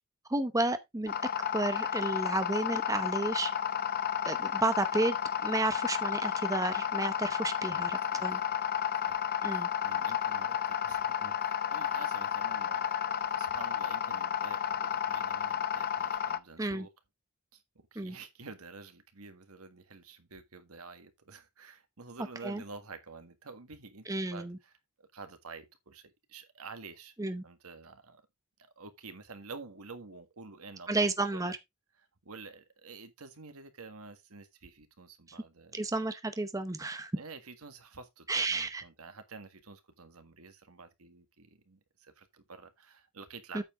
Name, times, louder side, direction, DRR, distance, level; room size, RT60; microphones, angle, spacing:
voice 1, 0.3-1.1 1.5-3.5 4.2-5.2 5.4-8.4 9.4-9.7 16.6-16.9 18.0-18.1 22.4-22.6 24.1-24.6 27.2-27.4 30.9-31.6 35.7-37.1 38.3-38.8 43.5-43.6, right 2 dB, 15° right, 0.7 m, -32 dB
sound 1, 1.1-16.4, left 8 dB, 45° left, 0.7 m, -32 dB
voice 2, 7.6-8.4 9.0-9.2 9.5-13.0 13.3-16.9 17.5-17.6 17.9-24.7 25.0-27.1 27.4-28.2 28.8-31.5 32.0-35.9 37.1-43.6, right 4 dB, 80° right, 1.7 m, -49 dB
8.7 x 7.1 x 3.7 m
head